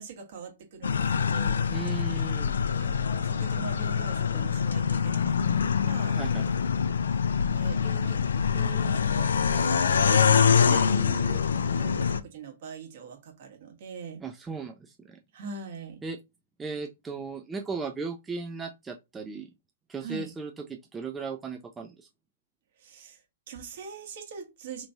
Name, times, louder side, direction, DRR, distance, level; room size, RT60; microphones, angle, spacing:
voice 1, 0.0-1.6 2.8-6.2 7.5-11.0 11.7-14.2 15.3-16.0 20.0-20.3 22.8-23.2 23.5-24.9, right 6 dB, 55° right, 1.3 m, -42 dB
sound 1, 0.8-12.2, left 6 dB, 75° left, 0.4 m, -25 dB
voice 2, 1.7-2.5 6.1-6.5 10.6-11.4 14.2-15.2 16.0-16.2 16.6-19.5 19.9-22.1, right 4 dB, 15° right, 0.4 m, -37 dB
3.3 x 3.0 x 2.7 m
hypercardioid pair, 115°, 0 cm